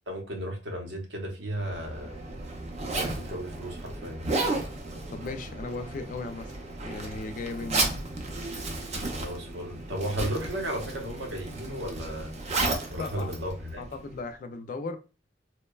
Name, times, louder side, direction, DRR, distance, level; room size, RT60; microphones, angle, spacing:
voice 1, 0.1-2.2 2.9-4.2 9.0-12.3 12.9-13.8, right 1 dB, 70° right, 1 dB, 0.8 m, -34 dB
Zipper (clothing), 1.6-14.2, right 2 dB, 35° right, 0.5 m, -34 dB
voice 2, 5.1-6.5 6.8-7.9 13.0-13.3 13.8-15.0, left 3 dB, 45° left, 9 dB, 0.3 m, -36 dB
2.8 x 2.1 x 2.2 m, 0.32 s
head